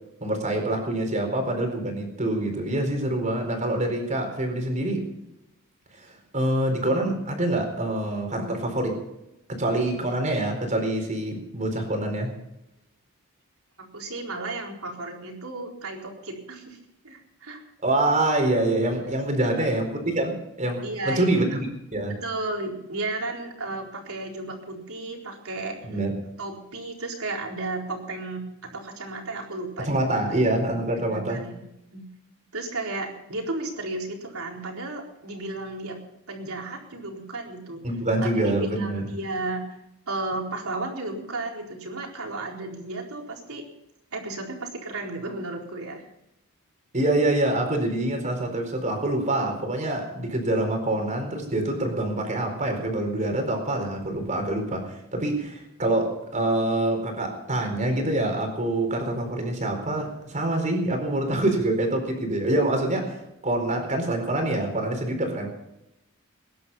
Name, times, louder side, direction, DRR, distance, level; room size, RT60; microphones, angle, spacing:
voice 1, 0.2-5.1 6.0-9.0 9.5-12.4 17.8-21.4 21.9-22.2 25.9-26.1 29.8-31.4 37.8-39.1 46.9-63.2 63.4-65.5, right 1 dB, 35° right, 4 dB, 4.3 m, -26 dB
voice 2, 13.8-16.8 17.0-17.6 19.4-19.7 20.8-21.4 22.1-25.8 26.4-28.4 28.7-30.4 31.1-31.6 31.9-32.0 32.5-36.0 36.3-37.8 38.2-39.8 40.1-43.6 44.1-46.1, right 2 dB, 70° right, 0 dB, 4.2 m, -33 dB
21.5 x 11.0 x 5.6 m, 0.87 s
head